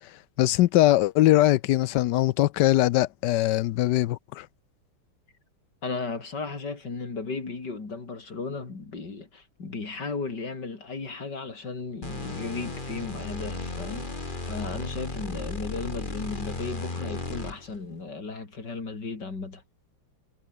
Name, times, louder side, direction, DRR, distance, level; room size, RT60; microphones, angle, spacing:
voice 1, 0.4-4.5, left 15 dB, 75° left, 1.0 m, -21 dB
voice 2, 5.8-19.6, left 4 dB, 50° left, 4.5 m, -35 dB
sound 1, 12.0-17.8, left 3 dB, 20° left, 2.6 m, -35 dB
omnidirectional pair, 2.4 m